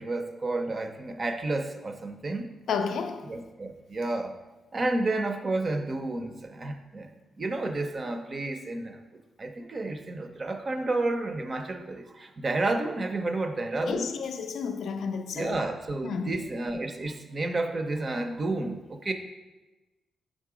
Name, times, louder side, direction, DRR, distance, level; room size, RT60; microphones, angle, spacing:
voice 1, 0.0-2.5 3.3-4.3 4.7-7.1 7.4-9.0 9.4-14.1 15.3-19.1, right 2 dB, 35° right, 0.5 m, -31 dB
voice 2, 2.7-3.3 13.8-15.6 16.0-16.4, left 5 dB, 75° left, 0.4 m, -31 dB
5.3 x 3.7 x 4.9 m
cardioid pair, 105°, 0 cm